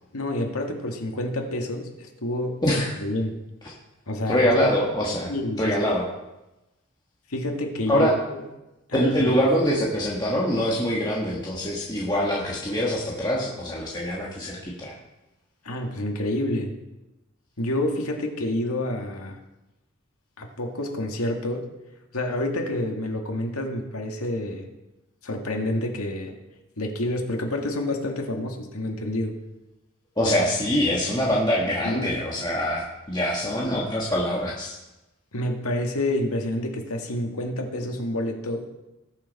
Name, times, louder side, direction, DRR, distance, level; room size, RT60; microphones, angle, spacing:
voice 1, 0.1-2.6 3.0-3.4 4.1-4.5 5.3-5.7 7.3-8.1 8.9-9.0 15.6-16.8 17.6-19.4 20.4-21.7 22.1-24.7 25.2-26.4 26.8-29.4 31.8-32.2 35.3-38.7, left 1 dB, 85° left, 2 dB, 1.9 m, -28 dB
voice 2, 2.6-2.9 4.3-5.3 5.6-6.1 7.9-8.1 8.9-14.9 30.2-34.7, equal, 20° left, -4 dB, 1.5 m, -24 dB
20.0 x 6.8 x 4.2 m, 0.97 s
head